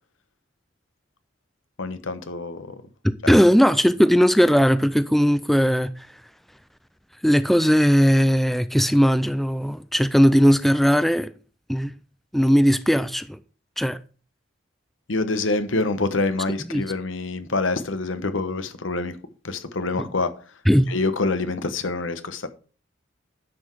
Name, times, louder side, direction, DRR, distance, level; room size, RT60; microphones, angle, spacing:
voice 1, 1.8-2.8 3.2-3.3 15.1-19.2 19.4-22.5, left 3 dB, 80° left, 1.1 m, -26 dB
voice 2, 3.3-6.1 7.2-11.3 11.7-11.9 12.3-13.4 13.8-14.0 16.7-16.8 20.7-20.9, equal, ahead, 0.4 m, -18 dB
10.0 x 6.0 x 4.7 m
head